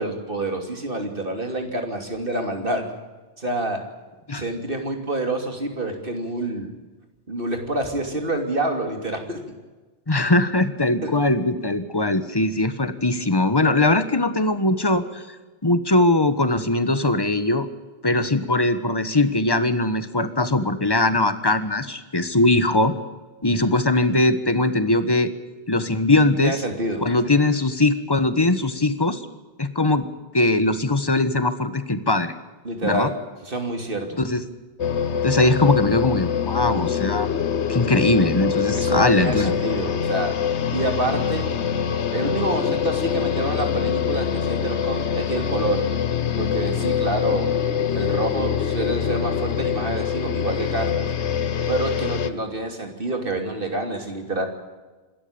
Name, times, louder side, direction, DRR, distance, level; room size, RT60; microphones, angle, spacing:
voice 1, 0.0-2.8 3.4-3.8 4.3-6.7 7.3-9.4 11.0-11.1 26.4-27.0 32.6-33.1 33.4-34.2 38.7-40.3 40.7-41.5 42.1-45.9 46.4-47.5 47.9-51.1 51.7-54.5, right 2 dB, 50° right, 5 dB, 3.2 m, -27 dB
voice 2, 10.1-15.3 15.6-17.7 18.0-22.9 23.4-25.3 25.7-26.6 27.0-29.2 29.6-30.0 30.3-32.3 32.8-33.1 34.2-34.4 35.2-37.3 37.7-39.5, left 2 dB, 20° left, 11 dB, 1.4 m, -20 dB
sound 1, 34.8-52.3, left 8 dB, 75° left, 1.3 m, -24 dB
26.5 x 13.5 x 8.7 m, 1.2 s
omnidirectional pair, 1.2 m